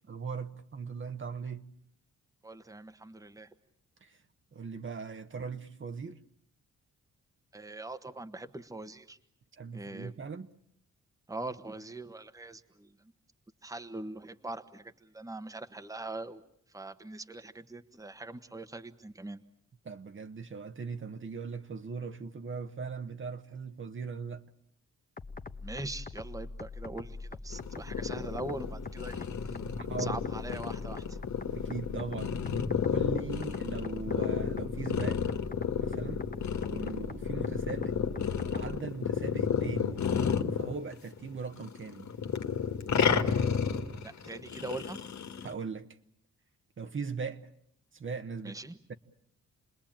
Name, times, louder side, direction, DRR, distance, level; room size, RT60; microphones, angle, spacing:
voice 1, 0.1-1.7 4.0-4.2 4.5-6.2 9.6-10.5 19.8-24.4 29.8-30.2 31.5-32.4 32.9-35.3 35.7-36.2 36.7-38.0 38.5-40.0 40.5-42.1 45.4-45.9 46.8-47.5 47.9-48.6 48.9-49.0, right 5 dB, 40° right, 1.3 m, -39 dB
voice 2, 2.4-3.5 7.5-9.2 9.7-10.1 11.3-12.9 13.6-16.4 16.7-19.4 25.6-29.3 29.8-31.2 43.6-45.0 48.4-48.8, right 2 dB, 10° right, 1.3 m, -42 dB
sound 1, 25.2-38.8, left 3 dB, 30° left, 1.3 m, -43 dB
sound 2, 27.5-41.3 41.6-45.5, left 7 dB, 65° left, 2.0 m, -32 dB
29.0 x 20.5 x 8.9 m
cardioid pair, 110°, 30 cm